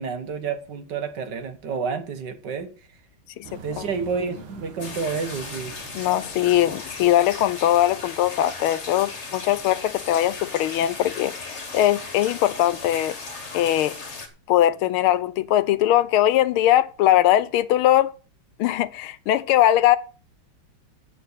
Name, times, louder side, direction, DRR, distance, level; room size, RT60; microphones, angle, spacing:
voice 1, 0.0-2.7 3.6-5.7, right 5 dB, 60° right, 1.8 m, -29 dB
sound 1, 3.4-8.4, right 4 dB, 80° right, 2.5 m, -45 dB
sound 2, 4.8-14.3, left 4 dB, 35° left, 1.9 m, -37 dB
voice 2, 5.9-13.1 13.5-13.9 14.5-18.1 18.6-20.0, left 13 dB, 90° left, 1.6 m, -20 dB
8.2 x 7.6 x 8.2 m
omnidirectional pair, 2.3 m